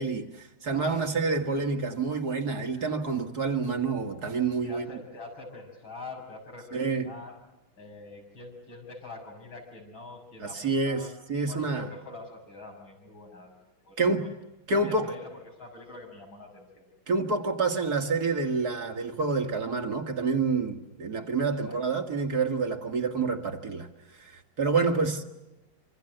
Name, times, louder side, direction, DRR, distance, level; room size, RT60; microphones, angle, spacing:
voice 1, 0.0-5.0 6.7-7.1 10.4-11.0 11.3-11.9 14.0-14.3 14.7-15.1 17.1-25.2, right 4 dB, 50° right, 2.4 m, -28 dB
voice 2, 0.7-1.4 2.8-2.9 4.6-7.4 7.8-11.1 11.5-13.5 13.8-14.3 14.7-16.8 21.5-21.8 24.8-25.0, left 3 dB, 75° left, 7.6 m, -45 dB
26.5 x 26.0 x 7.9 m
omnidirectional pair, 2.2 m